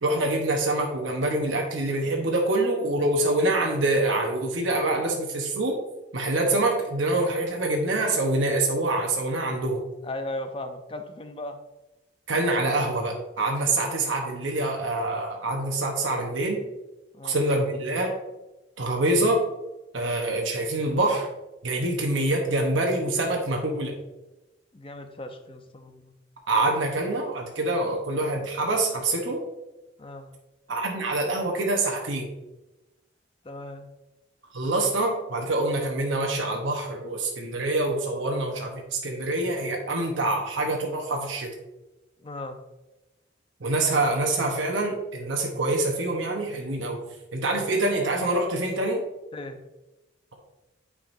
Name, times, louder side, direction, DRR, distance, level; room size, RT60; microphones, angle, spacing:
voice 1, 0.0-5.8 6.1-9.8 12.3-16.6 17.2-18.1 18.8-19.4 19.9-21.3 21.6-23.9 26.5-29.4 30.7-32.3 34.5-41.5 43.6-47.0 47.3-49.0, right 2 dB, 85° right, 1 dB, 1.0 m, -25 dB
voice 2, 10.0-11.6 17.1-17.4 24.7-26.1 30.0-30.3 33.4-33.9 42.2-42.6 49.3-49.6, left 1 dB, 25° left, 7 dB, 0.5 m, -37 dB
8.9 x 4.9 x 2.6 m, 1.0 s
head